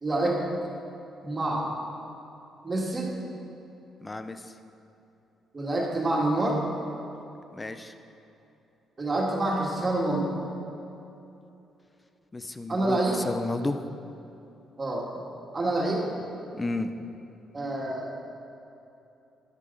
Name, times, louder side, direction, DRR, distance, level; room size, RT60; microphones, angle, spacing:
voice 1, 0.0-0.4 1.2-1.7 2.6-3.1 5.5-6.6 9.0-10.3 12.7-13.2 14.8-15.0 15.5-16.0 17.5-18.1, right 2 dB, 30° right, -3 dB, 2.3 m, -27 dB
voice 2, 4.0-4.4 7.5-7.9 12.3-13.0 13.2-13.8 16.6-16.9, left 2 dB, 20° left, 9 dB, 0.6 m, -31 dB
10.5 x 8.2 x 5.5 m, 2.9 s
cardioid pair, 90°, 0 cm